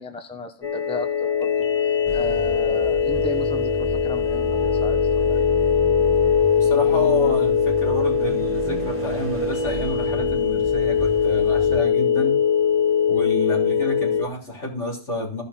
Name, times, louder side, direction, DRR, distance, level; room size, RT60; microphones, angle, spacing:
voice 1, 0.0-5.5, left 1 dB, 5° left, 6 dB, 0.9 m, -34 dB
sound 1, 0.6-14.3, left 7 dB, 30° left, 0.9 m, -21 dB
sound 2, 2.1-11.8, right 4 dB, 10° right, 1.8 m, -33 dB
voice 2, 6.6-12.4 13.1-15.4, left 2 dB, 65° left, -1 dB, 3.8 m, -29 dB
15.0 x 5.5 x 4.2 m, 0.36 s
omnidirectional pair, 1.3 m